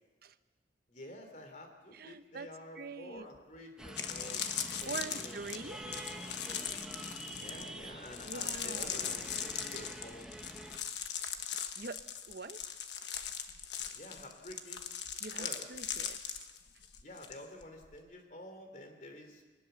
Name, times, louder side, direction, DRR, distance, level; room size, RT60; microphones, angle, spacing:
voice 1, 0.9-4.4 4.8-6.0 7.3-10.3 13.9-14.9 15.3-15.7 17.0-19.4, left 1 dB, 40° left, 5 dB, 3.3 m, -50 dB
voice 2, 1.9-2.5 2.8-3.3 4.8-5.9 8.2-9.2 11.8-12.0 12.3-12.6 15.2-16.5, right 4 dB, 50° right, 11 dB, 0.8 m, -44 dB
sound 1, 3.3-3.4 3.8-17.4 17.6-18.0, left 8 dB, 65° left, 1.3 m, -40 dB
sound 2, 3.8-10.8, right 1 dB, 5° right, 1.3 m, -47 dB
22.5 x 19.5 x 6.9 m, 1.3 s
head